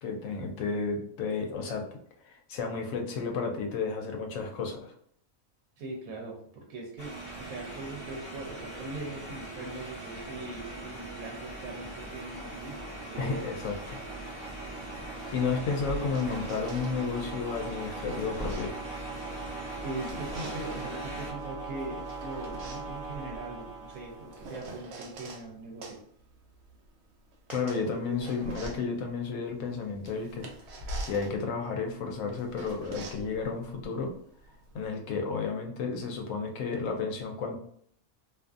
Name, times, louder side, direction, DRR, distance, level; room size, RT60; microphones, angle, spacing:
voice 1, 0.0-1.8 2.2-4.9 13.2-14.0 15.3-18.7 27.5-30.5 31.0-34.1 34.7-37.6, left 4 dB, 75° left, 2 dB, 0.9 m, -32 dB
voice 2, 5.8-7.1 7.4-12.8 13.1-13.5 19.8-26.0 27.8-28.2 28.4-28.6, right 2 dB, 85° right, 0 dB, 1.1 m, -41 dB
sound 1, 7.0-21.3, right 2 dB, 10° right, 1.0 m, -42 dB
sound 2, 8.7-24.8, right 3 dB, 35° right, 0.4 m, -42 dB
sound 3, 15.8-16.9 17.7-19.5 19.9-21.0 21.8-25.4 25.8-34.9, right 2 dB, 65° right, 0.7 m, -43 dB
2.5 x 2.4 x 2.3 m, 0.64 s
omnidirectional pair, 1.4 m